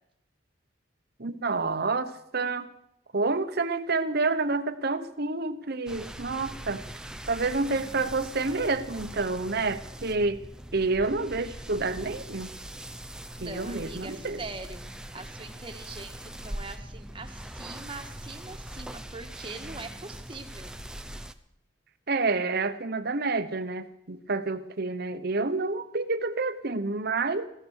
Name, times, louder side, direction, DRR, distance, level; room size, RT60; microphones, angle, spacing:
voice 1, 1.2-2.7 3.1-6.8 7.3-10.4 10.7-12.5 13.4-14.4 22.1-27.5, right 3 dB, 55° right, 10 dB, 1.1 m, -28 dB
sound 1, 5.9-21.3, right 1 dB, 5° right, 0.7 m, -41 dB
voice 2, 13.4-20.7, right 3 dB, 25° right, 5 dB, 1.7 m, -42 dB
16.5 x 13.0 x 6.5 m, 0.79 s
head